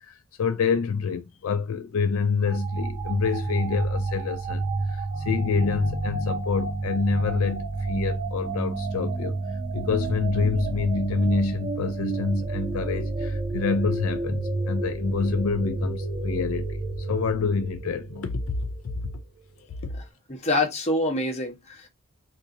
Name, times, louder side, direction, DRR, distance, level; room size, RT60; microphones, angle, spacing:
voice 1, 0.1-9.4 9.7-18.4 19.0-19.1 19.8-19.9, left 5 dB, 75° left, 0.4 m, -27 dB
sound 1, 2.5-18.8, right 3 dB, 30° right, 0.5 m, -29 dB
voice 2, 20.3-21.9, left 2 dB, 30° left, 0.9 m, -26 dB
2.7 x 2.6 x 3.7 m
head